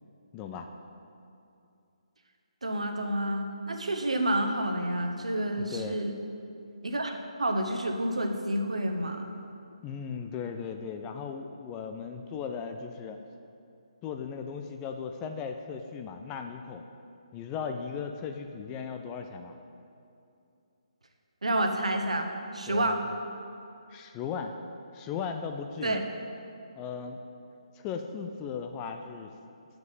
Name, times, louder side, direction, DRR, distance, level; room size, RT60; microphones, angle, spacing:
voice 1, 0.3-0.7 5.6-6.0 9.8-13.2 14.0-16.8 17.3-19.6 22.7-23.2 23.9-24.6 24.9-26.0 26.7-27.2 27.8-29.3, left 6 dB, 15° left, 5 dB, 0.4 m, -37 dB
voice 2, 2.6-6.1 6.8-9.3 21.4-23.0 25.8-26.1, right 1 dB, 70° right, 4 dB, 1.0 m, -29 dB
7.5 x 6.1 x 7.1 m, 2.6 s
figure-of-eight pair, 145°, 4 cm